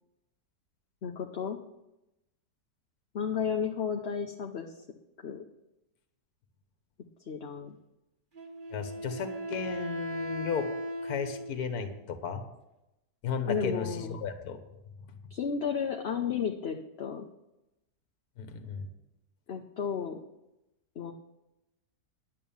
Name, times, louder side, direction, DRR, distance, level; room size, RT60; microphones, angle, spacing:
voice 1, 1.0-1.6 3.1-4.7 5.2-5.4 7.2-7.8 13.5-14.2 15.3-17.3 19.5-20.2 21.0-21.1, left 7 dB, 45° left, 2 dB, 0.9 m, -33 dB
Wind instrument woodwind instrument, 8.3-12.0, equal, 30° right, 1.6 m, -37 dB
voice 2, 8.7-10.7 11.0-12.4 13.2-14.6 18.4-18.9, left 6 dB, 60° left, 8 dB, 1.7 m, -34 dB
10.5 x 8.3 x 7.1 m, 0.91 s
omnidirectional pair, 1.8 m